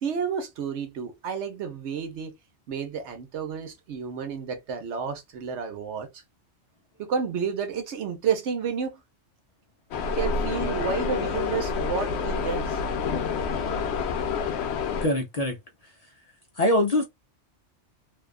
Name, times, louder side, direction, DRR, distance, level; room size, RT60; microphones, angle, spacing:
voice 1, 0.0-2.3 2.7-6.2 7.0-9.0 10.1-12.8, right 6 dB, 75° right, 1.1 m, -31 dB
sound 1, 9.9-15.1, left 5 dB, 70° left, 0.8 m, -28 dB
voice 2, 15.0-15.6 16.6-17.0, left 1 dB, 40° left, 0.6 m, -23 dB
2.6 x 2.3 x 2.3 m
omnidirectional pair, 1.2 m